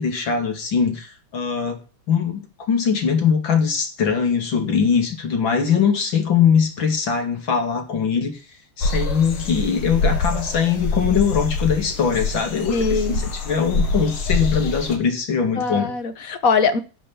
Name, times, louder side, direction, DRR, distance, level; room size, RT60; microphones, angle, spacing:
voice 1, 0.0-1.8 2.1-2.4 2.7-8.4 8.8-15.9, left 6 dB, 65° left, 3.0 m, -21 dB
sound 1, 8.8-15.0, left 3 dB, 80° left, 2.6 m, -25 dB
voice 2, 12.7-13.2 15.5-16.8, left 5 dB, 50° left, 1.4 m, -21 dB
12.0 x 6.7 x 7.0 m
omnidirectional pair, 2.3 m